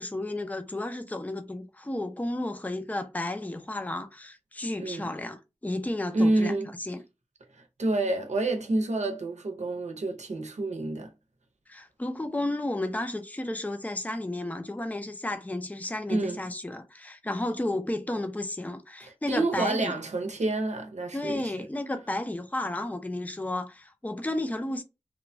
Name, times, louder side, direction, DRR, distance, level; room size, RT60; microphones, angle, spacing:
voice 1, 0.0-7.0 11.7-19.9 21.1-24.8, left 1 dB, 15° left, 0.5 m, -32 dB
voice 2, 4.8-5.1 6.1-6.7 7.5-11.1 16.1-16.4 19.0-21.7, right 2 dB, 85° right, 0.6 m, -28 dB
3.0 x 2.2 x 2.6 m
wide cardioid pair, 70°, 12 cm